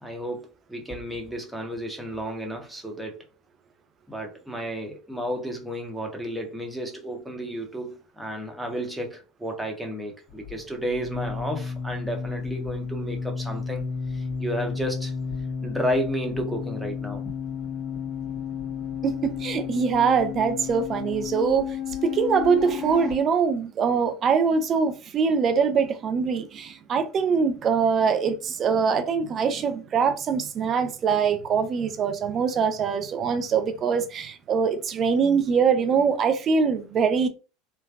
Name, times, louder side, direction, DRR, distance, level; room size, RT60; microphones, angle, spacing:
voice 1, 0.0-3.3 4.1-13.8 14.1-15.1 15.6-17.3, equal, 5° right, 1.0 m, -32 dB
sound 1, 10.3-23.1, left 6 dB, 40° left, 1.3 m, -32 dB
voice 2, 19.0-21.8 22.0-37.3, right 6 dB, 40° right, 0.5 m, -23 dB
3.2 x 2.2 x 2.4 m
hypercardioid pair, 80°, 0 cm